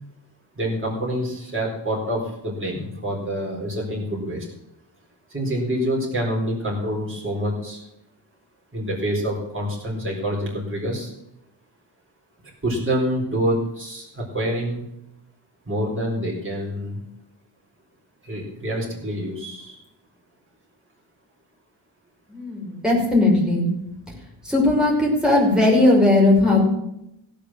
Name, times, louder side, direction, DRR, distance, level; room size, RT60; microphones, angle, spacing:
voice 1, 0.6-4.5 5.3-7.8 8.7-11.1 12.6-14.8 15.7-17.0 18.2-19.8, equal, 25° right, -3 dB, 4.3 m, -26 dB
voice 2, 22.3-23.7 24.4-26.6, left 2 dB, ahead, -3 dB, 5.8 m, -18 dB
16.0 x 6.9 x 7.5 m, 0.83 s
wide cardioid pair, 120°, 48 cm